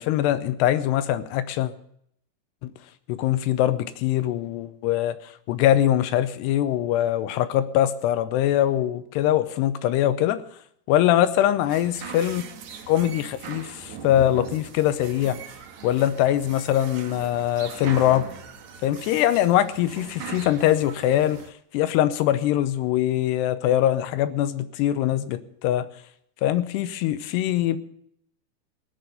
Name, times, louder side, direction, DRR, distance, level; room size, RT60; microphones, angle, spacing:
voice 1, 0.0-1.7 2.6-2.7 3.1-5.2 5.5-10.4 10.9-12.4 12.9-15.4 15.8-18.3 18.8-21.4 21.7-25.9 26.4-27.8, left 12 dB, 85° left, 13 dB, 2.9 m, -22 dB
sound 1, 11.7-21.5, right 6 dB, 65° right, 1.8 m, -40 dB
17.5 x 6.3 x 9.1 m, 0.69 s
omnidirectional pair, 4.8 m